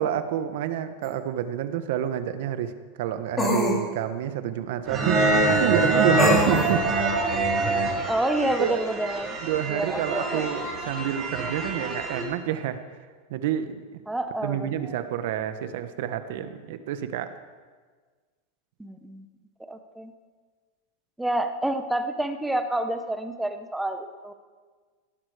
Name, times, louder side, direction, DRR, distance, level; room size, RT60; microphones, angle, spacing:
voice 1, 0.0-2.7 3.0-6.9 7.9-8.1 8.6-8.8 9.4-12.8 13.3-14.0 14.4-17.3, right 10 dB, 65° right, 10 dB, 1.1 m, -28 dB
sound 1, 1.0-1.1 3.4-3.8 6.2-6.7, left 2 dB, 15° left, 2.4 m, -24 dB
sound 2, 4.9-12.2, right 2 dB, 25° right, 3.3 m, -25 dB
voice 2, 8.1-9.4 9.7-10.5 14.1-15.0 18.8-19.3 19.7-20.1 21.2-24.3, right 1 dB, 5° right, 8 dB, 0.9 m, -28 dB
18.0 x 11.0 x 5.0 m, 1.5 s
supercardioid pair, 155°, 0 cm